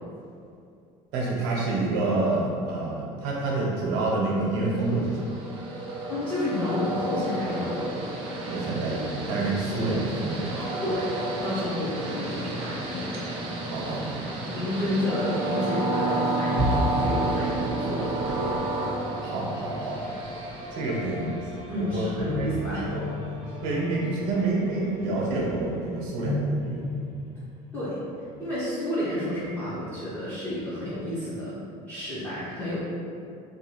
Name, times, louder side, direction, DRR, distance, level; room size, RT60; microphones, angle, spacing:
voice 1, 1.1-5.4 8.5-10.6 13.6-14.2 19.2-20.0 20.7-22.1 22.4-22.5 22.9-23.0 23.6-26.9, right 2 dB, 80° right, -4 dB, 0.7 m, -28 dB
Train, 4.7-21.4, right 2 dB, 40° right, 0.4 m, -31 dB
voice 2, 6.1-7.9 10.8-11.1 11.4-13.1 13.5-13.6 14.5-18.5 21.7-22.8 27.7-28.0 28.4-31.6 31.9-32.8, left 1 dB, 10° left, -12 dB, 0.5 m, -30 dB
sound 1, 16.5-28.2, equal, 55° left, 0.9 m, -33 dB
2.5 x 2.3 x 2.9 m, 2.4 s
cardioid pair, 175°, 14 cm